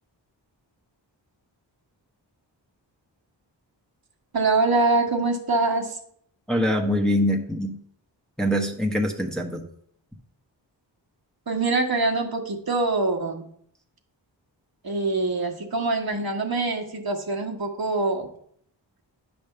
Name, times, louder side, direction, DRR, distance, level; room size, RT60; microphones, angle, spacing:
voice 1, 4.3-6.0 11.5-13.4 14.8-18.3, right 3 dB, 50° right, 1 dB, 1.4 m, -24 dB
voice 2, 6.5-7.7 8.4-9.7, equal, ahead, 1 dB, 1.1 m, -24 dB
9.5 x 3.5 x 6.7 m, 0.66 s
wide cardioid pair, 75°, 45 cm